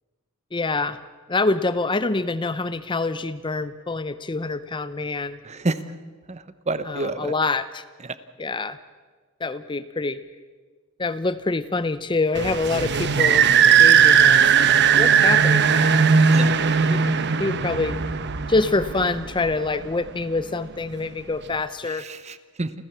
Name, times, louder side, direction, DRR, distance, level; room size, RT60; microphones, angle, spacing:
voice 1, 0.5-1.0 1.3-5.4 6.8-7.8 8.4-8.8 9.4-10.2 11.0-16.1 16.9-18.0 18.5-22.1, left 3 dB, 20° left, 13 dB, 0.6 m, -26 dB
voice 2, 5.4-5.8 6.3-7.3 8.0-8.2 16.3-16.6 21.9-22.7, right 2 dB, 30° right, 13 dB, 0.9 m, -29 dB
sound 1, 12.3-19.7, right 7 dB, 55° right, 0.9 m, -18 dB
29.0 x 14.5 x 7.2 m, 1.4 s
head